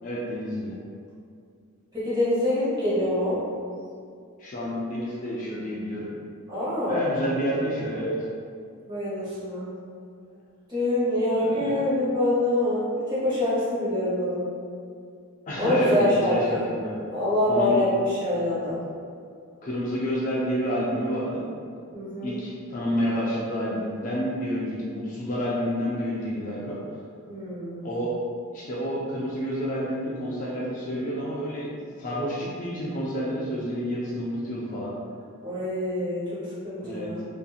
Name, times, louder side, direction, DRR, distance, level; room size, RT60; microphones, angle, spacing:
voice 1, 0.0-0.7 4.4-6.1 6.9-8.2 11.4-11.7 15.5-17.0 17.5-17.8 19.6-21.5 22.2-26.8 27.8-28.1 28.5-31.7 32.0-34.9 36.8-37.1, equal, 35° left, -6 dB, 0.4 m, -29 dB
voice 2, 1.9-3.4 6.5-7.0 8.9-9.7 10.7-14.4 15.6-16.6 17.1-18.8 21.9-22.3 27.3-27.9 35.4-37.3, left 1 dB, 20° right, -11 dB, 1.0 m, -25 dB
2.7 x 2.6 x 2.3 m, 2.2 s
head